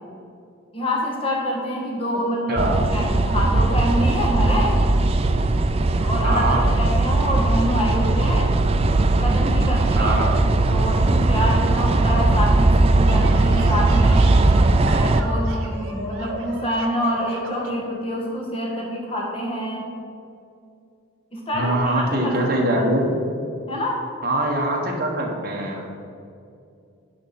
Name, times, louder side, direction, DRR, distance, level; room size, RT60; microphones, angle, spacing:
voice 1, 0.7-4.7 6.0-8.6 9.1-10.1 10.5-14.6 14.9-19.8 21.3-22.5 23.7-24.0, equal, 25° left, -2 dB, 1.6 m, -26 dB
voice 2, 2.5-2.8 6.2-6.7 9.9-10.4 21.5-23.1 24.2-25.9, right 1 dB, 45° right, -1 dB, 1.4 m, -23 dB
sound 1, 2.6-15.2, right 2 dB, 30° right, 0.3 m, -19 dB
sound 2, 13.1-17.8, right 1 dB, 85° right, 1.0 m, -35 dB
10.5 x 4.3 x 5.9 m, 2.5 s
head